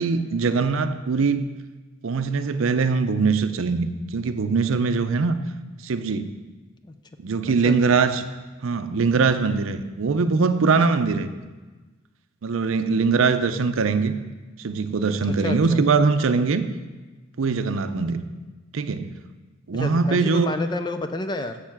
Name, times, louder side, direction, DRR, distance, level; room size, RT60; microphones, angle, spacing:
voice 1, 0.0-1.5 2.0-5.4 5.8-6.3 7.2-8.3 8.6-11.3 12.4-14.2 14.6-16.6 17.4-18.2 18.7-19.1 19.7-20.5, right 4 dB, 70° right, 10 dB, 0.5 m, -22 dB
voice 2, 7.6-8.0 15.4-15.8 19.7-21.6, left 2 dB, 20° left, 8 dB, 0.4 m, -30 dB
7.3 x 6.8 x 5.8 m, 1.3 s
head